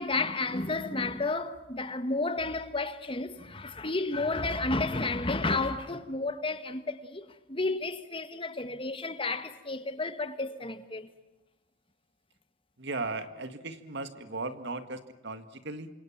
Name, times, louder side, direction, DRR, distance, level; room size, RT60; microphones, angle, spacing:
voice 1, 0.0-11.1, left 3 dB, 25° left, 1.5 m, -32 dB
voice 2, 12.8-15.9, right 3 dB, 60° right, 2.0 m, -37 dB
28.5 x 26.5 x 7.4 m
head